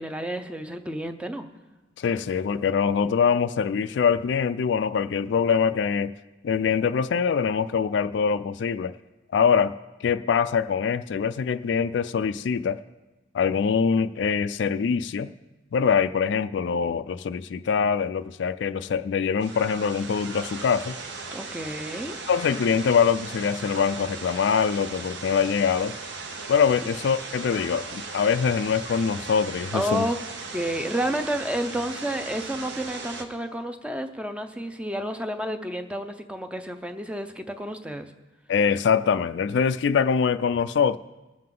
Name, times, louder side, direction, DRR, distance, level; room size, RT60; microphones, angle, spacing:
voice 1, 0.0-1.5 21.3-22.2 29.7-30.2 30.5-38.1, right 1 dB, 5° right, 0.6 m, -30 dB
voice 2, 2.0-6.1 6.4-9.0 9.3-9.8 10.0-12.8 13.3-15.3 15.7-21.0 22.3-25.9 26.5-30.1 38.5-41.0, left 6 dB, 65° left, 0.3 m, -24 dB
sound 1, 19.4-33.2, right 3 dB, 65° right, 1.0 m, -37 dB
20.5 x 7.6 x 3.8 m
head